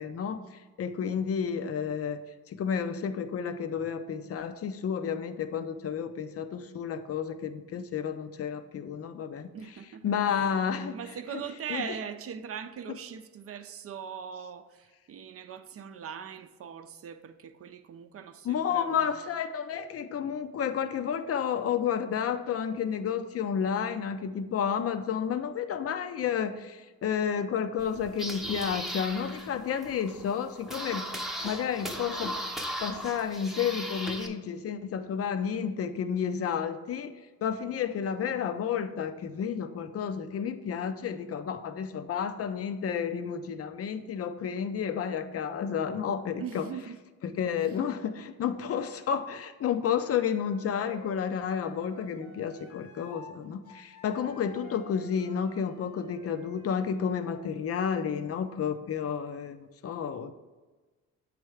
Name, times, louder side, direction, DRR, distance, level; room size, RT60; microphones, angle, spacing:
voice 1, 0.0-9.5 10.0-11.0 11.3-11.4 11.7-11.9 18.4-31.1 31.4-32.4 32.8-37.1 37.4-46.7 47.2-60.3, left 7 dB, 50° left, 0.6 m, -31 dB
voice 2, 9.5-10.5 10.9-19.2 46.4-47.0, right 7 dB, 50° right, 0.6 m, -41 dB
sound 1, 27.8-34.3, equal, ahead, 0.7 m, -37 dB
Wind instrument woodwind instrument, 49.8-53.4 53.6-57.5, left 3 dB, 90° left, 1.5 m, -52 dB
7.9 x 3.3 x 4.8 m
cardioid pair, 90°, 30 cm